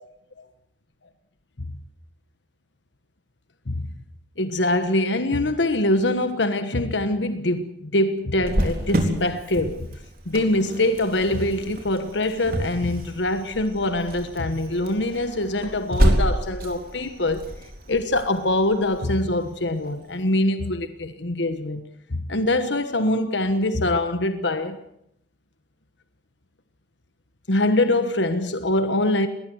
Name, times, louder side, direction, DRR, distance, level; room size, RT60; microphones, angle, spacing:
voice 1, 3.7-4.0 4.4-9.9 10.3-17.4 17.9-21.8 22.1-24.8 27.5-29.3, left 1 dB, 80° left, 1.4 m, -24 dB
Cricket, 8.4-19.9, equal, 55° right, 4.0 m, -28 dB
20.5 x 19.5 x 8.0 m
head